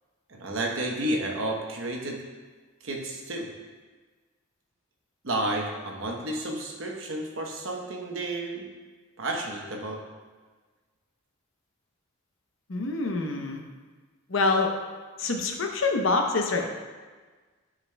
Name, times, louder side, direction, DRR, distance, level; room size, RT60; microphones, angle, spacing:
voice 1, 0.3-2.2 2.8-3.5 5.2-8.7 9.2-10.0, right 1 dB, 65° right, 1 dB, 0.9 m, -31 dB
voice 2, 12.7-13.6 14.3-14.7 15.2-16.7, left 3 dB, 60° left, 3 dB, 0.7 m, -26 dB
10.5 x 4.8 x 2.2 m, 1.4 s
head